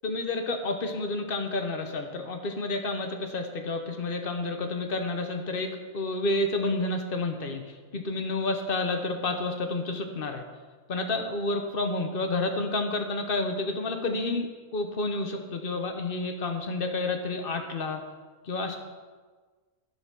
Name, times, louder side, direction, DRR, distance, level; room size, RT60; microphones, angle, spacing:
voice 1, 0.0-10.4 10.9-18.0 18.4-18.8, left 2 dB, 40° left, 5 dB, 0.9 m, -30 dB
13.0 x 4.5 x 5.9 m, 1.4 s
omnidirectional pair, 1.8 m